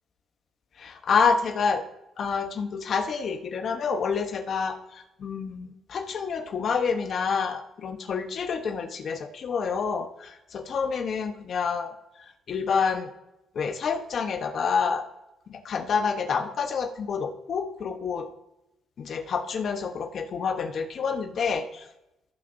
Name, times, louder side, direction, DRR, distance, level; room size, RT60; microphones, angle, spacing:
voice 1, 0.8-1.8 2.2-11.9 12.5-13.1 13.5-15.0 15.5-18.3 19.0-21.8, left 5 dB, 60° left, 6 dB, 1.1 m, -28 dB
15.0 x 6.7 x 2.8 m, 0.89 s
cardioid pair, 90°, 0 cm